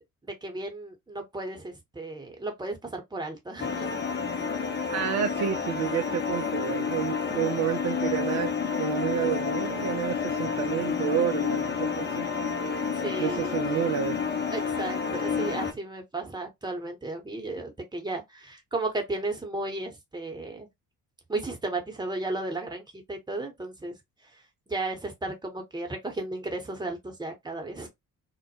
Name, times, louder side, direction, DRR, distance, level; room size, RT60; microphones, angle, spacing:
voice 1, 0.2-3.9 4.3-4.4 12.9-13.6 14.5-20.7 21.3-23.9 24.7-27.9, right 2 dB, 10° right, 1.0 m, -34 dB
sound 1, 3.6-15.7, left 6 dB, 25° left, 0.7 m, -30 dB
voice 2, 4.9-8.5 8.8-12.3 13.2-14.2, right 9 dB, 40° right, 0.4 m, -29 dB
2.2 x 2.1 x 2.8 m
hypercardioid pair, 50°, 44 cm